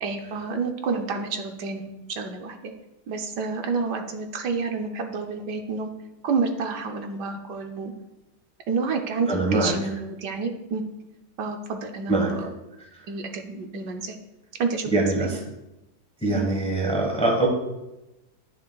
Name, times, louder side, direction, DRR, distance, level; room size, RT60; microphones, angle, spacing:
voice 1, 0.0-2.7 3.1-5.9 6.2-7.9 8.7-10.8 11.4-12.5 13.1-14.2 14.6-15.4 16.3-16.4, right 4 dB, 70° right, 4 dB, 1.3 m, -29 dB
voice 2, 9.3-9.7 12.1-12.3 14.9-15.4 16.2-17.5, right 2 dB, 5° left, 0 dB, 0.9 m, -23 dB
10.5 x 6.4 x 2.3 m, 0.97 s
omnidirectional pair, 1.9 m